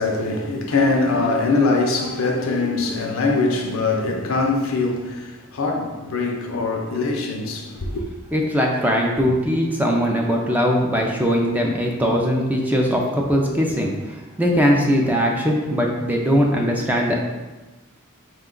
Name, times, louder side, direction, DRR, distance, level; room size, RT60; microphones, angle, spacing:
voice 1, 0.0-8.0, left 3 dB, 70° left, 0.6 m, -22 dB
voice 2, 8.3-17.2, equal, 10° right, 0.4 m, -20 dB
5.0 x 2.2 x 3.7 m
head